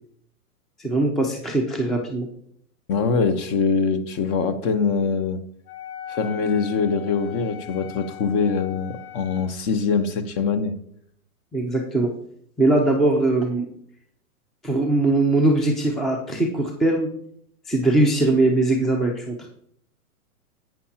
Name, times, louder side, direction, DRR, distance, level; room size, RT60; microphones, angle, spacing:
voice 1, 0.8-2.3 11.5-12.1 12.6-13.7 14.6-17.1 17.7-19.5, right 2 dB, ahead, 2 dB, 0.6 m, -21 dB
voice 2, 2.9-5.4 6.1-10.7, left 5 dB, 30° left, 11 dB, 1.1 m, -23 dB
Wind instrument woodwind instrument, 5.7-9.6, left 12 dB, 80° left, 1.6 m, -39 dB
11.0 x 8.9 x 2.9 m, 0.68 s
hypercardioid pair, 130°, 45 cm